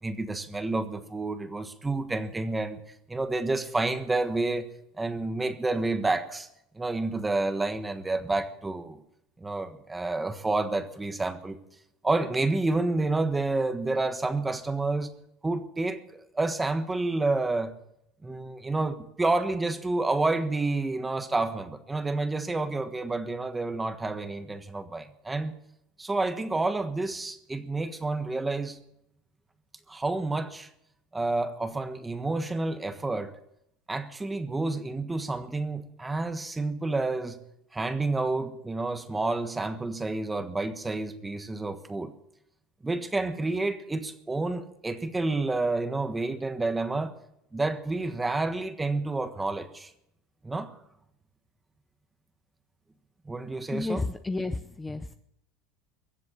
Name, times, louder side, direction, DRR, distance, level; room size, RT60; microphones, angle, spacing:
voice 1, 0.0-2.8 3.1-4.7 5.0-6.5 6.7-9.0 9.4-11.6 12.0-15.1 15.4-16.0 16.3-17.7 18.2-25.5 26.0-28.8 29.9-30.7 31.1-33.3 33.9-37.4 37.7-42.1 42.8-47.1 47.5-49.9 50.4-50.7 53.2-54.0, right 2 dB, 10° right, 9 dB, 1.4 m, -29 dB
voice 2, 53.7-55.1, left 3 dB, 10° left, 9 dB, 0.6 m, -32 dB
22.5 x 7.6 x 7.4 m, 0.79 s
supercardioid pair, 125°, 0 cm